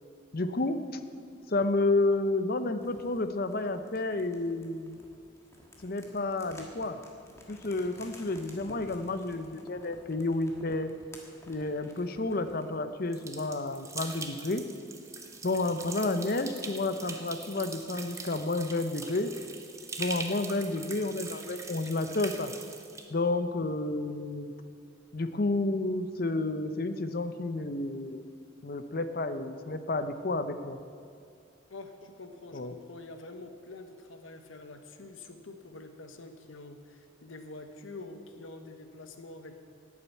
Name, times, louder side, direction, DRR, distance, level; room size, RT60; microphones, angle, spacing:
voice 1, 0.3-0.8 1.5-5.0 5.8-7.0 7.5-10.9 11.5-14.7 15.4-19.3 20.0-22.5 23.1-24.5 25.1-28.2 28.6-30.8 32.5-32.7, left 2 dB, 45° left, 10 dB, 0.7 m, -30 dB
sound 1, 2.8-12.8, left 1 dB, 15° left, 1.5 m, -53 dB
sound 2, 13.1-23.1, right 4 dB, 15° right, 0.8 m, -42 dB
voice 2, 31.7-39.6, left 2 dB, 70° left, 7 dB, 1.1 m, -46 dB
11.5 x 8.6 x 8.4 m, 2.4 s
head